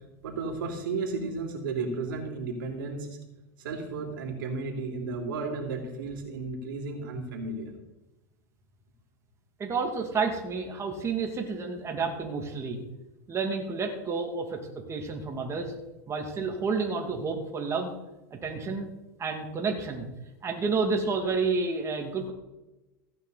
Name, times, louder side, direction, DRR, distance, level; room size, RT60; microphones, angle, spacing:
voice 1, 0.2-3.1 3.6-7.7, right 3 dB, 80° right, 2 dB, 3.2 m, -33 dB
voice 2, 9.6-12.8 13.3-14.6 14.9-15.7 16.1-17.9 18.3-18.9 19.2-20.1 20.4-22.3, right 4 dB, 25° right, 2 dB, 2.3 m, -30 dB
15.5 x 9.0 x 4.1 m, 1.0 s
hypercardioid pair, 110°, 11 cm